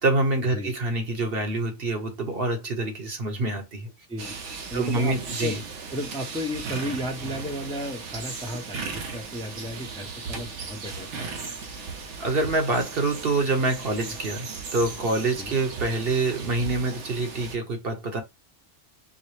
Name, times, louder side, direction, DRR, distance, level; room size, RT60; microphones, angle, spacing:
voice 1, 0.0-3.9 4.7-5.6 12.2-18.2, right 2 dB, 55° right, 1.0 m, -26 dB
sound 1, 4.2-17.6, right 4 dB, 75° right, 1.1 m, -37 dB
voice 2, 4.7-5.6 5.9-11.3 14.0-14.2 15.4-15.5, left 1 dB, 5° left, 0.6 m, -34 dB
4.7 x 2.1 x 3.0 m
omnidirectional pair, 1.3 m